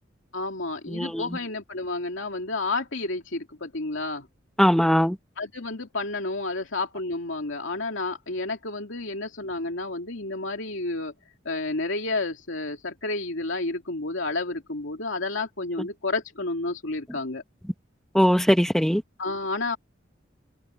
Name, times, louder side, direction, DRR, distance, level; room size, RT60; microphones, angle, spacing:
voice 1, 0.3-4.3 5.4-11.1 11.4-17.4 19.2-19.8, left 2 dB, 85° left, 2.5 m, -30 dB
voice 2, 0.9-1.2 4.6-5.1 18.1-19.0, equal, ahead, 1.4 m, -20 dB
head